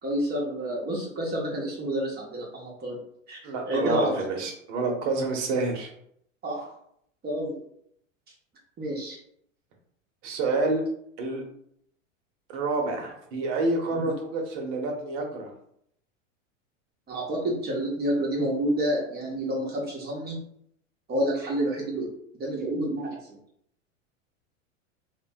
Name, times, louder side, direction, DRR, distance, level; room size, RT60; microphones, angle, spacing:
voice 1, 0.0-3.0 3.3-4.2 6.4-6.7 7.2-7.6 8.8-9.2 13.9-14.0 17.1-20.4 21.1-22.1 22.4-23.4, right 1 dB, 25° right, -3 dB, 0.8 m, -29 dB
voice 2, 3.4-5.9 10.2-10.8 11.2-11.4 12.5-15.5, right 3 dB, 60° right, 2 dB, 0.9 m, -28 dB
2.9 x 2.2 x 2.7 m, 0.71 s
hypercardioid pair, 100°, 39 cm